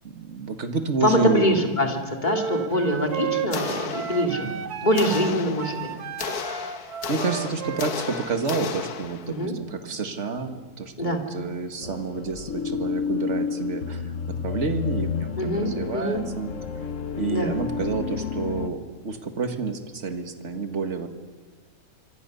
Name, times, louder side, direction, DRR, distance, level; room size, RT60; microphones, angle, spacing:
voice 1, 0.1-1.7 4.3-4.6 7.1-16.5 17.1-21.1, right 4 dB, 45° right, 7 dB, 2.1 m, -29 dB
voice 2, 1.0-4.5 4.8-5.9 9.3-9.5 11.0-11.2 15.4-16.2 17.3-17.5, equal, 30° left, 3 dB, 3.0 m, -24 dB
sound 1, 2.2-8.8, right 8 dB, 75° right, 1.6 m, -33 dB
sound 2, 3.5-4.6 5.0-9.5, left 7 dB, 70° left, 1.6 m, -34 dB
sound 3, 11.8-18.7, left 6 dB, 55° left, 1.4 m, -30 dB
26.0 x 25.5 x 6.9 m, 1.4 s
omnidirectional pair, 1.7 m